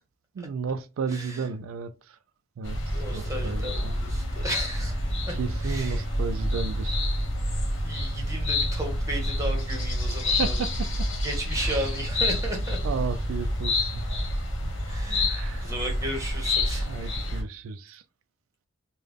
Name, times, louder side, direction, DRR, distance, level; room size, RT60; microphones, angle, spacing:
voice 1, 0.3-2.2 2.6-3.9 5.3-7.1 9.7-9.8 10.3-11.1 11.5-12.0 12.8-14.0 14.6-14.7 15.3-15.7 16.7-18.0, right 5 dB, 85° right, 0.3 m, -34 dB
voice 2, 1.1-1.4 3.0-5.0 5.3-5.4 5.6-6.0 7.8-10.6 11.2-12.8 13.9-14.0 14.8-16.9, right 1 dB, 15° right, 1.1 m, -34 dB
sound 1, 2.6-17.4, left 1 dB, 65° left, 1.2 m, -28 dB
3.4 x 2.2 x 3.5 m
head